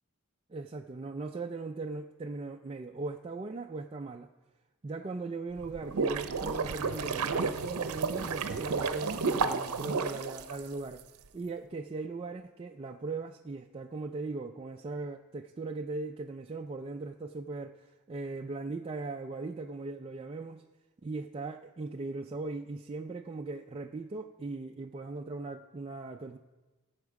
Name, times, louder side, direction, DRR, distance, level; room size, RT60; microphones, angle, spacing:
voice 1, 0.5-4.3 4.8-11.0 11.3-20.6 21.0-26.4, right 3 dB, 25° right, 3 dB, 0.4 m, -39 dB
sound 1, 5.6-11.0, right 4 dB, 85° right, 0.7 m, -32 dB
17.0 x 7.3 x 4.7 m, 1.2 s
head